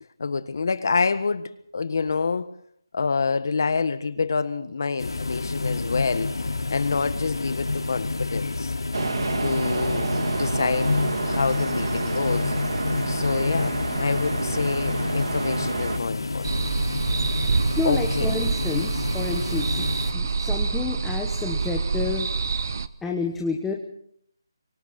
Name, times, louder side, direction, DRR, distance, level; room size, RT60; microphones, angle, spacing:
voice 1, 0.2-2.5 2.9-6.3 6.7-8.7 9.4-12.5 13.1-16.7 17.8-18.2, left 4 dB, 50° left, 12 dB, 1.6 m, -27 dB
sound 1, 5.0-20.1, left 3 dB, 85° left, 4.7 m, -29 dB
sound 2, 8.9-16.0, right 3 dB, 65° right, 2.3 m, -29 dB
sound 3, 16.4-22.9, right 4 dB, 45° right, 0.9 m, -26 dB
voice 2, 17.8-19.9 20.1-22.3 23.0-23.7, left 4 dB, 5° left, 0 dB, 1.1 m, -29 dB
26.5 x 24.0 x 4.3 m, 0.66 s
figure-of-eight pair, 170°, 2 cm